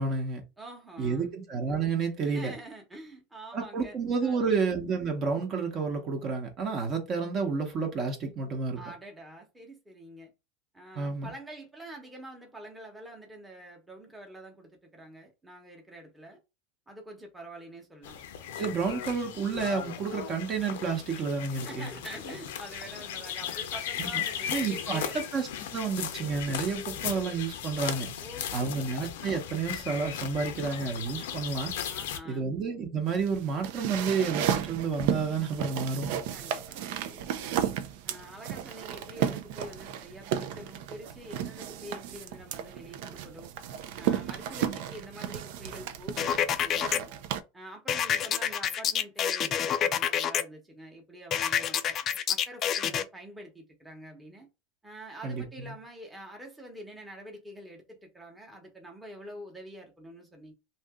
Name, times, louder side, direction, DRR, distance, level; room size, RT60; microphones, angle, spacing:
voice 1, 0.0-0.4 1.0-2.5 3.5-8.8 10.9-11.3 18.6-21.9 24.0-24.2 24.5-28.1 28.5-31.7 32.3-36.1 55.2-55.7, right 5 dB, 35° right, 0.9 m, -30 dB
voice 2, 0.6-1.3 2.2-4.6 8.8-10.3 10.7-16.4 16.9-18.2 21.6-25.2 26.0-26.1 28.2-28.9 31.9-32.5 36.3-37.6 38.0-43.5 43.9-47.1 47.5-52.0 52.3-54.5 54.8-60.5, right 1 dB, 10° right, 0.9 m, -46 dB
sound 1, 18.0-32.2, left 9 dB, 85° left, 0.5 m, -37 dB
sound 2, 33.1-47.4, right 9 dB, 65° right, 0.4 m, -34 dB
sound 3, 46.2-47.0 47.9-50.4 51.3-53.0, left 9 dB, 35° left, 0.3 m, -27 dB
2.7 x 2.5 x 3.5 m
supercardioid pair, 135°, 0 cm